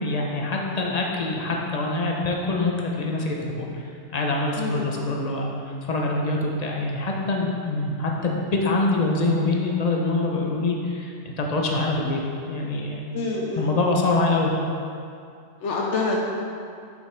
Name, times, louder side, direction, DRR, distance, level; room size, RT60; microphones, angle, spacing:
voice 1, 0.0-3.7 4.1-5.5 5.8-12.2 12.5-13.0 13.6-14.5, left 2 dB, 45° left, -1 dB, 0.6 m, -25 dB
voice 2, 4.6-4.9 13.1-13.7 15.6-16.2, left 3 dB, 70° left, -2 dB, 0.9 m, -26 dB
6.3 x 5.2 x 3.2 m, 2.4 s
omnidirectional pair, 1.3 m